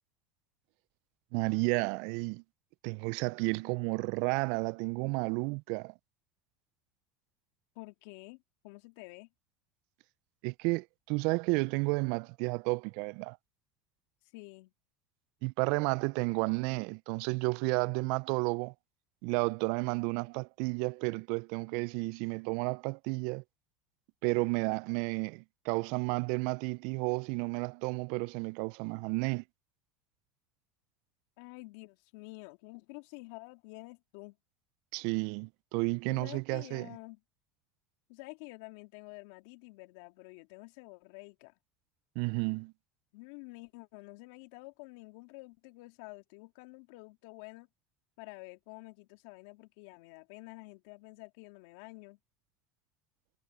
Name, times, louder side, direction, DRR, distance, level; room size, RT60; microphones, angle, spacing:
voice 1, 1.3-2.4 2.8-5.9 10.4-13.4 15.4-18.7 19.2-23.4 24.2-29.4 34.9-36.9 42.2-42.7, right 30 dB, 70° right, 0.3 m, -32 dB
voice 2, 7.7-9.3 14.3-14.7 31.4-34.4 36.1-37.2 38.1-41.5 43.1-47.7 48.2-52.2, left 25 dB, 75° left, 2.9 m, -49 dB
hypercardioid pair, 90°, 0 cm